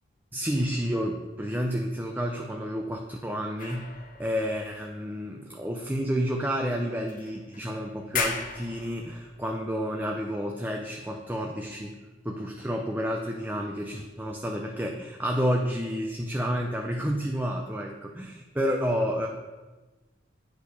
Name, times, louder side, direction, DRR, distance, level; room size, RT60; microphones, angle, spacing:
voice 1, 0.3-3.9 4.2-11.9 12.2-19.3, equal, 10° right, 2 dB, 0.5 m, -30 dB
sound 1, 3.6-5.5 6.3-6.4 7.1-7.7 8.0-9.6, left 5 dB, 45° left, 0.9 m, -36 dB
8.4 x 5.0 x 5.2 m, 1.2 s
head